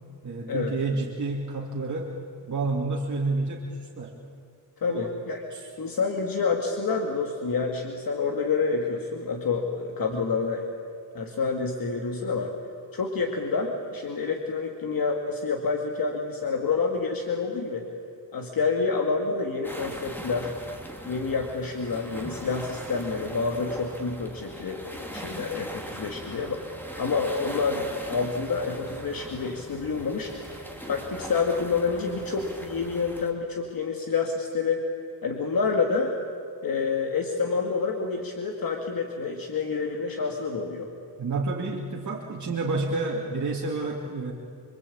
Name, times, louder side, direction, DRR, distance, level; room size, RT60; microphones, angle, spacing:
voice 1, 0.2-2.1 2.5-4.2 4.9-5.0 5.5-5.7 41.2-44.3, right 3 dB, 40° right, -2 dB, 2.5 m, -29 dB
voice 2, 4.8-5.4 5.8-10.7 11.1-12.5 12.9-17.9 18.3-20.5 21.1-26.6 27.0-30.3 30.8-34.9 35.2-36.2 36.6-40.9, left 4 dB, 50° left, 2 dB, 2.3 m, -28 dB
sound 1, 19.6-33.3, equal, 5° left, 2.8 m, -40 dB
27.0 x 24.5 x 8.6 m, 2.6 s
wide cardioid pair, 175°, 45 cm